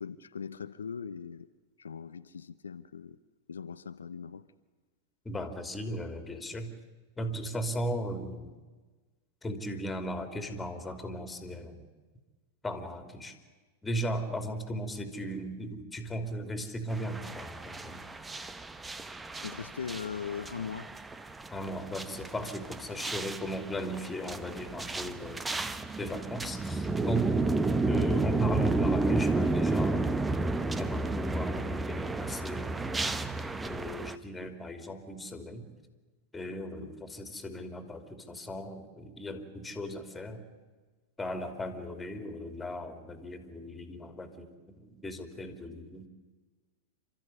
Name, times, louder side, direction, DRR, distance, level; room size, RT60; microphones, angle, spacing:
voice 1, 0.0-1.5 1.8-3.2 3.5-4.5 19.3-20.9 36.8-36.9, left 6 dB, 85° left, 0.7 m, -40 dB
voice 2, 5.2-6.7 7.2-8.5 9.4-11.8 12.6-13.3 13.8-18.1 21.5-25.4 26.0-27.4 27.9-30.2 30.8-33.0 33.6-35.7 36.3-40.4 41.2-46.1, equal, 10° left, 3.2 m, -37 dB
sound 1, 16.9-34.2, right 3 dB, 10° right, 1.0 m, -32 dB
28.0 x 13.5 x 9.8 m
hypercardioid pair, 95°, 0 cm